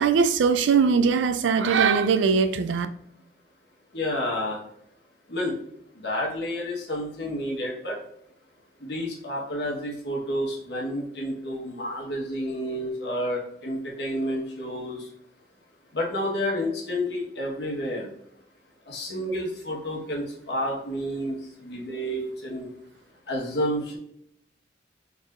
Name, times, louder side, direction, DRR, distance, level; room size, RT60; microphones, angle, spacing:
voice 1, 0.0-2.9, right 5 dB, 85° right, 11 dB, 0.4 m, -21 dB
voice 2, 3.9-4.6 5.3-5.5 6.0-7.9 8.8-15.0 15.9-18.1 18.9-21.3 21.6-22.7 23.3-24.0, equal, 65° left, -2 dB, 1.3 m, -30 dB
4.0 x 3.6 x 2.5 m, 0.72 s
head